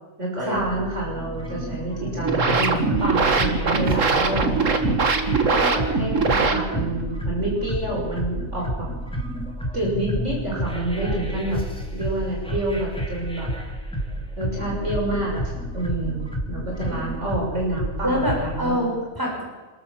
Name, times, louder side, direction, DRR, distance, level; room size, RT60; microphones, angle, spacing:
voice 1, 0.2-4.8 5.5-8.9 9.7-11.6 11.9-13.5 14.4-18.9, right 1 dB, 70° right, -3 dB, 6.7 m, -28 dB
sound 1, 0.6-18.6, equal, 5° left, 3.0 m, -30 dB
sound 2, 2.0-7.0, right 4 dB, 85° right, 2.0 m, -22 dB
voice 2, 18.0-19.4, equal, 15° right, -2 dB, 6.3 m, -25 dB
26.5 x 13.5 x 7.3 m, 1.3 s
omnidirectional pair, 1.3 m